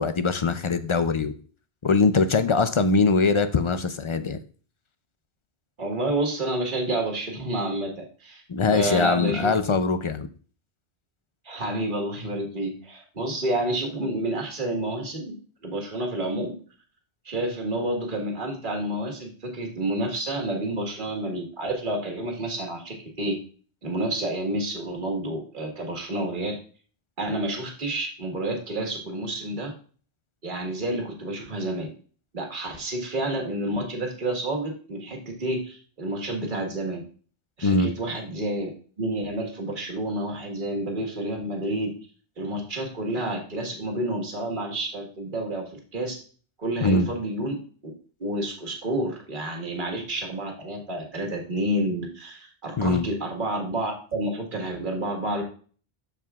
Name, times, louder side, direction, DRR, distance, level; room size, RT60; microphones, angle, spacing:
voice 1, 0.0-1.3 1.8-4.4 8.5-10.3 37.6-37.9 46.8-47.1 52.8-53.1, left 4 dB, 40° left, 10 dB, 0.4 m, -22 dB
voice 2, 5.8-8.4 8.7-9.5 11.5-15.3 15.6-16.5 17.3-23.4 23.8-26.6 27.2-29.7 30.4-31.9 32.3-37.0 37.6-38.7 39.0-41.9 42.4-46.2 46.6-47.6 48.2-55.4, right 1 dB, 50° right, 1 dB, 1.7 m, -29 dB
12.5 x 4.8 x 2.4 m, 0.40 s
omnidirectional pair, 1.1 m